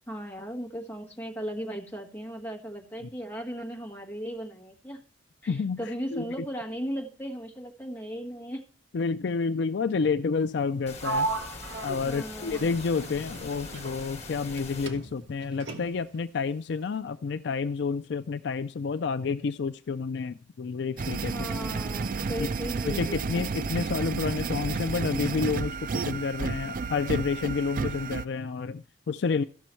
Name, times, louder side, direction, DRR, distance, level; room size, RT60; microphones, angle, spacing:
voice 1, 0.1-5.0 5.4-8.7 12.0-12.7 21.3-23.5, equal, 10° left, 2 dB, 1.5 m, -37 dB
voice 2, 5.5-5.8 6.1-6.2 8.9-11.3 11.8-21.5 22.4-22.5 22.8-29.4, left 5 dB, 60° left, 11 dB, 0.4 m, -29 dB
sound 1, 10.9-14.9, left 3 dB, 35° left, 1.5 m, -42 dB
Sliding door, 11.0-14.6 14.9-16.2, right 3 dB, 65° right, 1.2 m, -36 dB
sound 2, 21.0-28.2, right 4 dB, 45° right, 0.4 m, -31 dB
14.0 x 6.2 x 4.4 m, 0.41 s
head